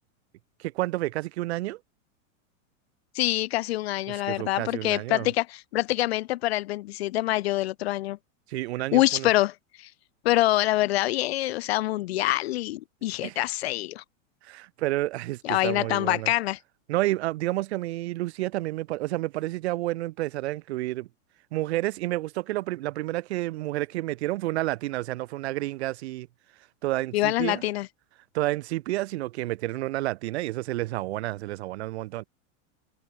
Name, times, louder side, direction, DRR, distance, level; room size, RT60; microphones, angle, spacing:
voice 1, 0.6-1.8 4.1-5.3 8.5-9.3 13.2-13.4 14.4-16.3 16.9-21.1 21.5-26.3 26.8-27.6 28.3-32.2, right 17 dB, 50° right, 3.4 m, -30 dB
voice 2, 3.1-8.2 8.9-9.9 10.2-14.0 15.4-16.6 27.1-27.9, left 16 dB, 50° left, 0.6 m, -25 dB
supercardioid pair, 170°, 40 cm